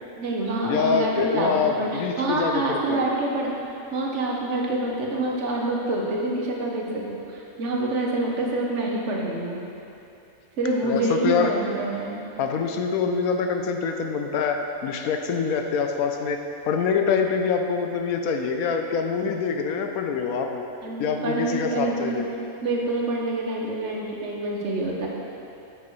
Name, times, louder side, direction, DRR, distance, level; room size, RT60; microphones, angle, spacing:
voice 1, 0.2-3.5 3.9-9.6 10.6-12.2 20.8-22.2 22.6-25.1, right 2 dB, 60° right, -2 dB, 1.3 m, -26 dB
voice 2, 0.7-3.1 10.8-11.5 12.4-16.4 16.7-20.6 21.0-22.3, left 5 dB, 85° left, 4 dB, 1.1 m, -25 dB
9.3 x 7.7 x 3.2 m, 2.8 s
omnidirectional pair, 1.5 m